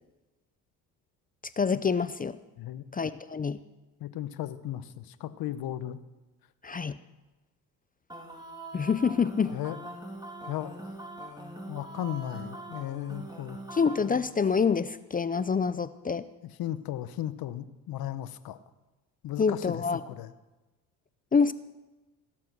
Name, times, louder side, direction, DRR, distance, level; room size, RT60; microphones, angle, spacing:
voice 1, 1.6-2.4 2.9-3.6 6.6-7.0 8.7-9.6 13.7-16.2 19.4-20.0 21.3-21.5, left 5 dB, 20° left, 14 dB, 0.5 m, -26 dB
voice 2, 4.0-6.0 9.5-9.8 10.5-11.0 11.7-13.6 16.4-18.6 19.2-20.3, left 12 dB, 60° left, 14 dB, 1.0 m, -36 dB
sound 1, 8.1-14.2, right 1 dB, 10° right, 2.9 m, -42 dB
16.5 x 7.7 x 6.2 m, 1.1 s
hypercardioid pair, 70°, 41 cm